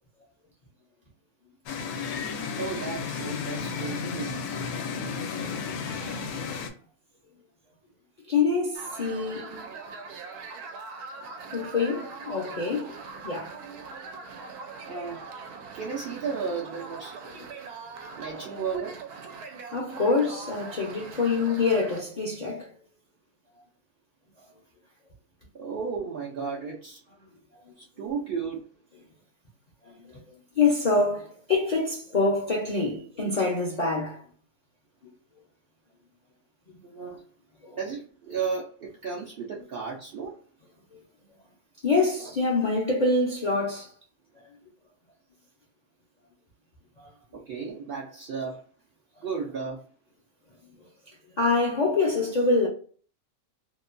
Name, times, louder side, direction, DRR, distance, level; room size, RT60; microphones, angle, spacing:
sound 1, 1.7-6.7, left 5 dB, 80° left, 1.1 m, -33 dB
voice 1, 2.5-4.4 9.4-9.7 14.9-15.2 15.7-17.2 18.2-19.0 25.5-27.0 27.8-28.6 36.8-37.2 37.7-40.4 47.3-48.6 49.2-49.9, right 5 dB, 65° right, 0.5 m, -34 dB
voice 2, 8.3-9.6 11.2-13.6 17.3-17.5 19.7-22.7 27.7-27.8 28.0-28.1 29.8-30.2 30.5-34.2 37.6-37.8 40.9-41.0 41.8-43.9 47.0-47.1 51.4-52.7, left 3 dB, 50° left, 0.5 m, -26 dB
sound 2, 8.8-22.0, right 4 dB, 85° right, 1.1 m, -41 dB
2.8 x 2.2 x 2.4 m
omnidirectional pair, 1.6 m